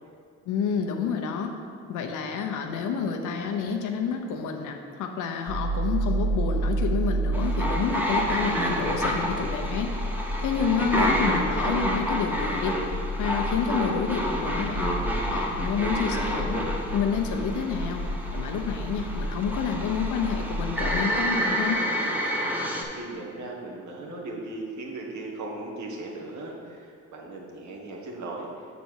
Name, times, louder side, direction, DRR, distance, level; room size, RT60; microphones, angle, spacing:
voice 1, 0.5-1.6 1.9-9.9 10.4-15.0 15.3-16.6 16.9-18.0 18.3-21.8, left 6 dB, 90° left, 4 dB, 0.8 m, -29 dB
sound 1, 5.5-21.0, right 1 dB, 50° right, 1.4 m, -31 dB
sound 2, 7.3-22.8, equal, 5° right, 1.0 m, -29 dB
voice 2, 22.9-28.5, right 2 dB, 70° right, -1 dB, 1.4 m, -37 dB
7.0 x 4.2 x 6.3 m, 2.3 s
cardioid pair, 90°, 30 cm